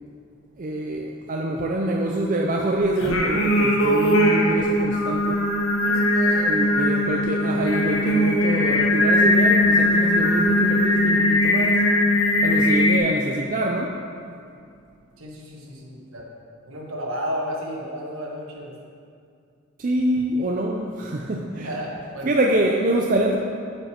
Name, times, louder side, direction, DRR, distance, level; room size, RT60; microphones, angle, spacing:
voice 1, 0.6-5.5 6.4-11.8 12.4-13.9 19.8-21.7 22.2-23.4, right 1 dB, 40° right, 0 dB, 0.4 m, -25 dB
Singing, 3.0-13.0, left 1 dB, 75° left, 1.0 m, -20 dB
voice 2, 5.8-6.6 15.2-16.3 16.6-18.8 21.5-22.4, equal, 75° right, -2 dB, 1.4 m, -33 dB
8.9 x 5.2 x 4.3 m, 2.4 s
head